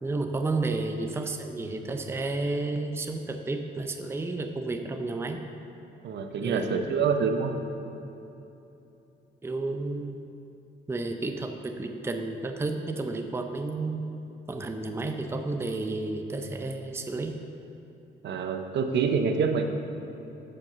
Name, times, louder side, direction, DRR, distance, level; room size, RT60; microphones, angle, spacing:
voice 1, 0.0-5.4 6.4-6.7 9.4-10.1 10.9-14.0 14.5-17.4, right 2 dB, 10° right, 5 dB, 0.5 m, -31 dB
voice 2, 6.0-7.5 18.2-19.7, right 5 dB, 60° right, 6 dB, 0.7 m, -26 dB
7.0 x 5.3 x 6.7 m, 2.9 s
cardioid pair, 90°, 20 cm